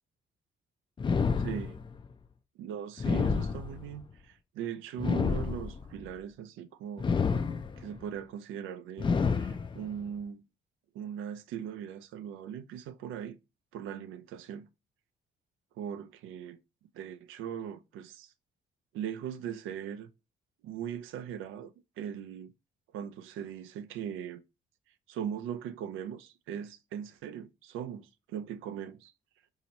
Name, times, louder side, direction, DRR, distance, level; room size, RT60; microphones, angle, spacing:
sound 1, 1.0-2.0 3.0-4.1 5.0-6.0 7.0-8.0 9.0-10.0, left 5 dB, 25° left, 0.4 m, -29 dB
voice 1, 1.4-1.8 2.6-7.1 7.8-10.4 10.9-13.4 13.7-14.7 15.8-16.6 16.9-18.3 18.9-20.1 20.6-21.7 22.0-22.5 22.9-24.4 25.1-29.1, right 9 dB, 85° right, 0.4 m, -39 dB
4.2 x 2.8 x 2.9 m
cardioid pair, 90°, 20 cm